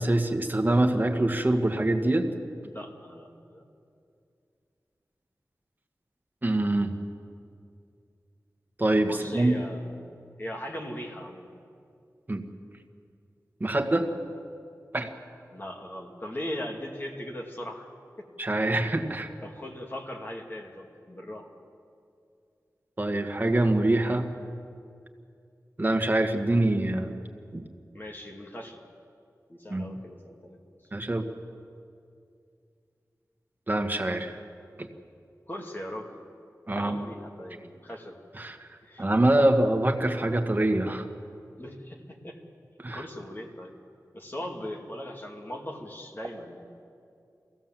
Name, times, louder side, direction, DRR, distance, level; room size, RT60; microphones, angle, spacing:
voice 1, 0.0-2.3 6.4-6.9 8.8-9.5 12.3-12.4 13.6-14.1 14.9-15.1 18.4-19.3 23.0-24.3 25.8-27.1 27.5-27.6 29.7-29.9 30.9-31.3 33.7-34.4 34.8-34.9 36.7-37.0 38.4-38.7 39.0-41.1 42.8-43.0, right 1 dB, 30° right, 5 dB, 1.7 m, -24 dB
voice 2, 2.6-3.7 9.0-11.5 15.5-17.9 18.2-18.3 19.4-21.5 27.9-28.8 29.5-30.6 35.5-36.2 36.7-38.2 38.8-39.1 41.6-42.4 42.9-43.7 44.1-46.7, left 1 dB, 35° left, 1 dB, 2.6 m, -39 dB
23.0 x 16.0 x 7.6 m, 2.4 s
wide cardioid pair, 65°, 6 cm